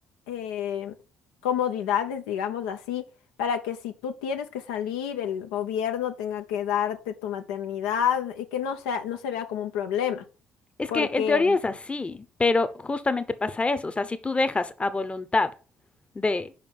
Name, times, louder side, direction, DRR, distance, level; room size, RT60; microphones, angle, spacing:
voice 1, 0.3-0.9 1.4-3.0 3.4-10.2 10.9-11.5, left 9 dB, 75° left, 0.6 m, -29 dB
voice 2, 10.8-15.5 16.1-16.5, left 3 dB, 20° left, 0.8 m, -26 dB
5.2 x 5.2 x 5.2 m
hypercardioid pair, 50°, 5 cm